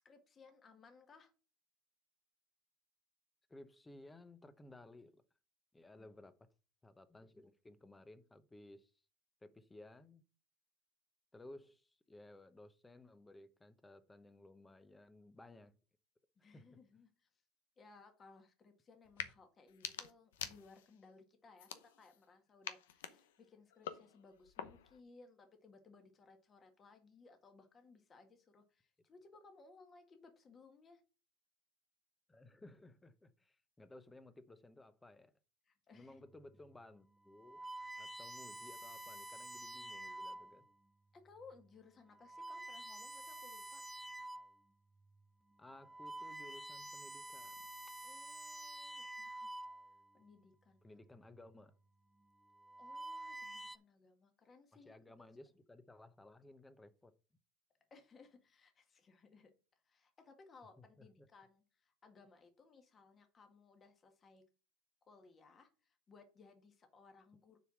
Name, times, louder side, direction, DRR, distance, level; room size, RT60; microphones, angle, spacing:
voice 1, 0.0-1.3 5.9-6.1 16.4-17.3 17.8-31.0 35.7-36.3 41.1-43.8 48.0-49.5 50.1-50.8 52.8-55.4 57.9-64.4 65.1-67.6, left 4 dB, 30° left, 1.7 m, -62 dB
voice 2, 3.5-5.2 5.7-6.4 6.8-8.9 9.4-10.2 11.3-15.7 16.5-16.7 32.3-35.3 35.9-37.6 38.0-40.6 45.6-47.6 50.8-51.7 54.7-57.1 61.0-61.3, left 2 dB, 10° left, 0.9 m, -58 dB
sound 1, 19.0-19.3 19.7-21.0 21.6-22.2 22.6-25.0, left 10 dB, 90° left, 0.8 m, -47 dB
sound 2, 36.4-36.6 37.3-40.7 41.4-41.6 42.1-44.6 45.0-45.2 45.7-50.1 51.1-51.5 52.4-53.8, right 1 dB, 5° right, 0.5 m, -49 dB
6.8 x 4.7 x 6.0 m
supercardioid pair, 110°, 0 cm